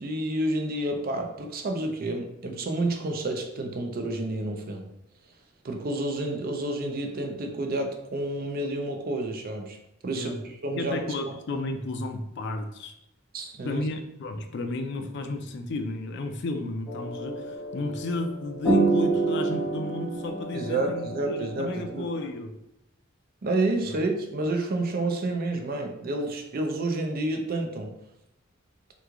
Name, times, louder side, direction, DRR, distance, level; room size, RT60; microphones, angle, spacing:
voice 1, 0.0-4.9 5.6-9.8 10.0-11.7 13.3-13.9 20.5-22.1 23.4-27.9, right 2 dB, 50° right, 4 dB, 0.5 m, -30 dB
voice 2, 10.7-12.9 13.6-22.6 23.8-24.0, left 2 dB, 60° left, 6 dB, 0.4 m, -33 dB
sound 1, 16.9-22.3, right 3 dB, 5° left, 0.9 m, -28 dB
3.0 x 2.3 x 3.6 m, 0.86 s
head